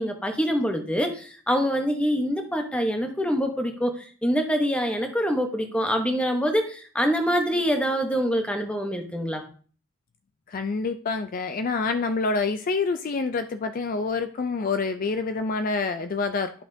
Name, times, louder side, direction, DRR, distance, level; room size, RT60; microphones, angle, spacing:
voice 1, 0.0-9.4, equal, 5° left, 4 dB, 0.9 m, -25 dB
voice 2, 10.5-16.5, left 4 dB, 40° left, 9 dB, 0.3 m, -27 dB
10.5 x 5.7 x 2.7 m, 0.42 s
head